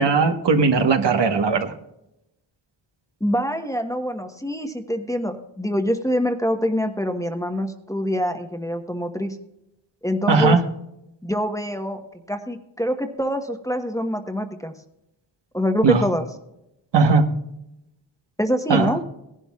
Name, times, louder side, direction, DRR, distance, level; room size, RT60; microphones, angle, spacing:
voice 1, 0.0-1.7 10.3-10.6 15.8-16.0 16.9-17.3 18.7-18.9, right 4 dB, 65° right, 1.3 m, -18 dB
voice 2, 3.2-9.4 10.0-10.6 11.2-12.0 12.3-14.7 15.5-16.2 18.4-19.0, equal, 5° left, 1.1 m, -25 dB
17.0 x 11.0 x 2.4 m
wide cardioid pair, 85°, 46 cm